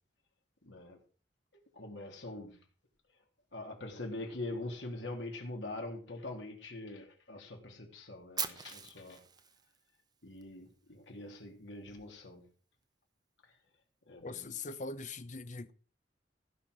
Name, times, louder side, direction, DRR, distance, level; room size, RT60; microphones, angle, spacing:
voice 1, 0.6-1.0 1.5-2.6 3.5-9.2 10.2-12.5 14.1-14.5, left 2 dB, 80° left, 3.4 m, -43 dB
Fire, 8.4-10.4, right 7 dB, 25° right, 1.0 m, -41 dB
voice 2, 14.2-15.7, left 3 dB, 45° left, 0.8 m, -41 dB
16.0 x 5.9 x 6.5 m
head